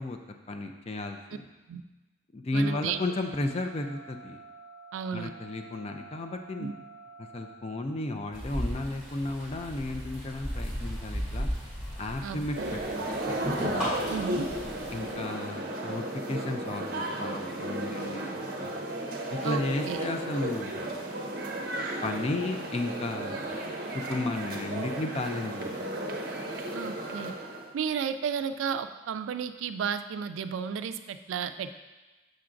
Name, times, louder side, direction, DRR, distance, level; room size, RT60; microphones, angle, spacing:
voice 1, 0.0-1.5 2.3-4.4 5.1-6.7 7.2-11.5 12.0-13.5 14.4-14.5 14.9-18.4 18.6-18.7 19.3-21.0 22.0-23.6 23.9-25.7, left 2 dB, 30° left, 5 dB, 0.4 m, -33 dB
sound 1, 2.5-7.5, right 4 dB, 30° right, 1.1 m, -49 dB
voice 2, 2.5-3.0 4.9-5.3 6.6-6.7 12.2-12.7 14.1-14.5 19.4-20.1 26.7-27.3 27.7-31.8, right 7 dB, 90° right, 10 dB, 0.3 m, -33 dB
sound 2, 8.3-15.1, equal, ahead, 2.0 m, -35 dB
sound 3, 12.5-27.7, right 1 dB, 50° right, 0.7 m, -34 dB
6.4 x 5.8 x 2.5 m, 1.1 s
head